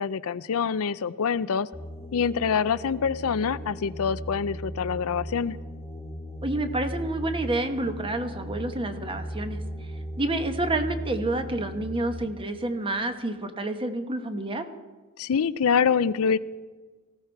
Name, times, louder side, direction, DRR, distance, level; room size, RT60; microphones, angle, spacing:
voice 1, 0.0-1.7 2.1-5.6 15.2-16.4, left 6 dB, 70° left, 15 dB, 0.5 m, -25 dB
sound 1, 1.7-12.3, equal, 5° left, 1.7 m, -37 dB
voice 2, 6.4-9.6 10.2-14.7, right 2 dB, 25° right, 7 dB, 1.2 m, -29 dB
19.0 x 15.5 x 4.6 m, 1.3 s
head